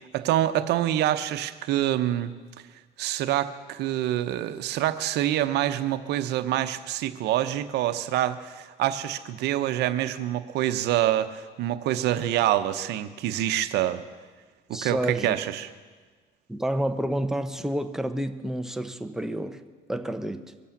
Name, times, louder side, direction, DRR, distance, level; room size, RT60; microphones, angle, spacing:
voice 1, 0.1-2.3 3.0-14.0 14.7-15.7, right 12 dB, 80° right, 0.8 m, -26 dB
voice 2, 14.7-15.4 16.5-19.6 19.9-20.4, right 1 dB, 5° right, 0.8 m, -29 dB
23.5 x 8.4 x 7.2 m
cardioid pair, 110°, 17 cm